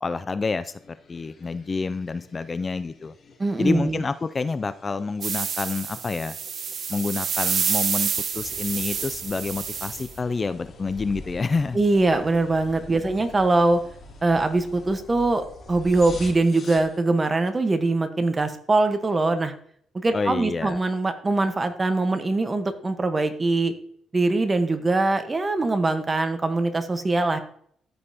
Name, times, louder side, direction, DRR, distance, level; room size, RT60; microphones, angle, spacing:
voice 1, 0.0-0.8 1.1-3.1 3.6-6.3 6.9-8.1 8.3-11.8 12.9-13.0 20.1-20.8, left 4 dB, 30° left, 13 dB, 0.3 m, -28 dB
sound 1, 0.7-17.0, left 3 dB, 45° left, 2.5 m, -48 dB
voice 2, 3.4-4.0 11.7-13.8 14.2-19.5 19.9-23.7 24.1-27.4, right 2 dB, 25° right, 8 dB, 1.1 m, -22 dB
sound 2, 5.2-10.1, right 7 dB, 55° right, 0.7 m, -28 dB
sound 3, 8.3-14.9, left 1 dB, 60° left, 3.0 m, -45 dB
14.0 x 5.3 x 2.8 m, 0.62 s
cardioid pair, 90°, 0 cm